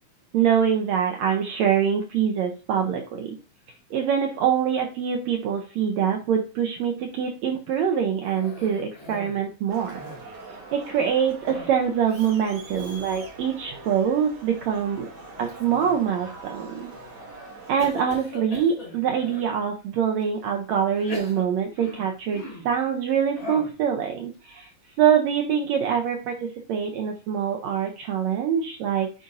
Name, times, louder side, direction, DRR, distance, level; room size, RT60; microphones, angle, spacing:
voice 1, 0.3-3.4 3.9-10.0 10.7-15.1 15.4-16.9 17.7-24.7 25.0-29.1, right 8 dB, 90° right, 3 dB, 1.5 m, -24 dB
Cough, 8.2-9.4 9.7-10.4 11.4-11.8 12.1-12.3 12.7-13.0 13.5-14.0 15.5-16.3 16.9-17.3 17.8-19.5 20.2-20.3 20.9-22.8 23.4-23.8, left 1 dB, 30° left, 2.1 m, -41 dB
Crowd, 9.7-17.9, right 3 dB, 60° right, 2.9 m, -43 dB
9.8 x 4.0 x 2.5 m, 0.34 s
omnidirectional pair, 4.0 m